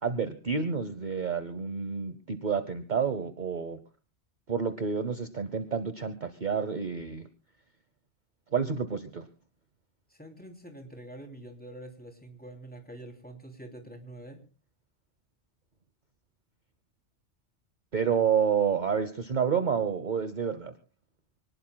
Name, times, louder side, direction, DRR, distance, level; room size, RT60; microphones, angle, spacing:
voice 1, 0.0-3.8 4.5-7.2 8.5-9.3 17.9-20.7, right 6 dB, 45° right, 10 dB, 1.0 m, -29 dB
voice 2, 10.1-14.4, right 1 dB, 10° left, 3 dB, 3.0 m, -46 dB
26.0 x 19.0 x 2.2 m, 0.35 s
omnidirectional pair, 1.2 m